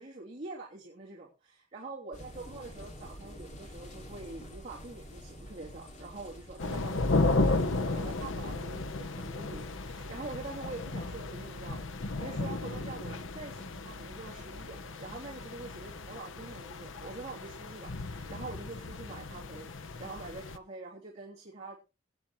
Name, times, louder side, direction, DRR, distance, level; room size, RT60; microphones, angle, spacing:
voice 1, 0.0-21.8, right 3 dB, 35° right, -6 dB, 3.1 m, -45 dB
sound 1, 2.1-10.3, equal, 40° left, 2.4 m, -49 dB
sound 2, 6.6-20.6, left 2 dB, 85° left, 0.9 m, -34 dB
24.0 x 8.8 x 3.1 m, 0.30 s
head